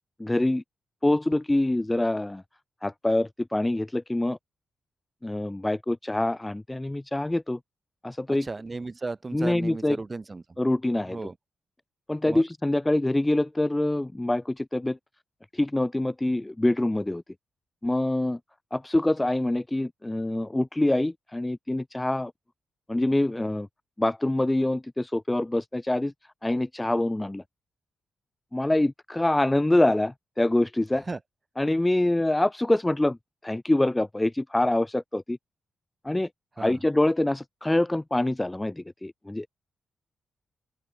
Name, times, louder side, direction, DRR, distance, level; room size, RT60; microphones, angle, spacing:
voice 1, 0.2-0.6 1.0-2.4 2.8-4.4 5.2-7.6 8.0-8.5 9.3-10.0 10.6-11.2 12.1-15.0 15.5-17.2 17.8-18.4 18.7-22.3 22.9-23.7 24.0-26.1 26.4-27.4 28.5-31.1 31.6-33.2 33.4-35.4 36.0-36.3 36.6-39.6, left 1 dB, 10° left, 0.8 m, -25 dB
voice 2, 8.4-10.4 11.0-11.3 12.3-12.4 31.1-31.2 36.6-36.8, right 3 dB, 25° right, 2.4 m, -35 dB
wide cardioid pair, 130°, 0 cm